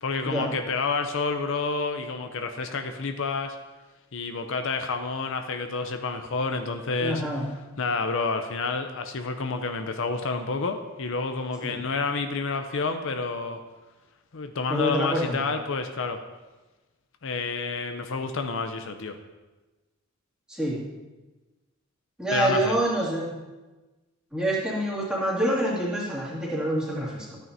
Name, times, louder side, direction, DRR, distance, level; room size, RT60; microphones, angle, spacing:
voice 1, 0.0-3.6 4.1-7.2 7.8-13.6 14.3-16.2 17.2-19.2 22.3-22.8, left 4 dB, 60° left, 6 dB, 0.6 m, -29 dB
voice 2, 7.0-7.5 11.6-11.7 14.7-15.5 20.5-20.8 22.2-23.4 24.3-27.4, right 1 dB, 5° right, -7 dB, 2.4 m, -27 dB
13.5 x 9.1 x 2.7 m, 1.2 s
head